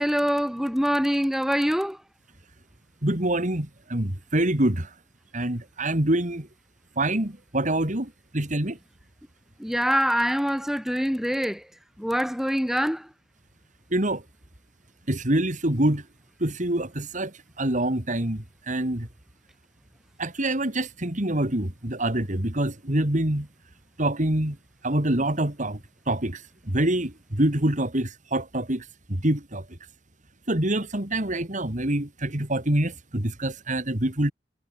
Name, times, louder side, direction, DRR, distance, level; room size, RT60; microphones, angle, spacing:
voice 1, 0.0-2.0 9.6-11.6 12.0-13.1, equal, ahead, 6.4 m, -24 dB
voice 2, 3.0-4.9 5.3-6.5 7.0-8.8 13.9-14.2 15.1-16.0 16.4-17.3 17.6-19.1 20.2-23.5 24.0-24.6 24.8-25.8 26.1-26.4 26.7-29.6 30.5-34.3, right 1 dB, 45° right, 3.2 m, -25 dB
head